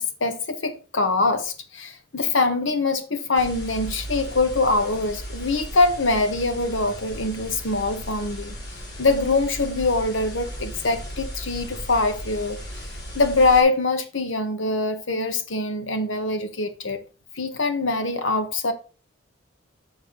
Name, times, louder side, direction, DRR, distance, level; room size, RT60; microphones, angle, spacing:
voice 1, 0.0-8.5 9.0-12.6 13.1-17.0 17.3-18.7, left 3 dB, 85° left, 1.2 m, -23 dB
sound 1, 3.3-13.6, equal, 60° left, 3.7 m, -36 dB
7.0 x 6.4 x 3.9 m
head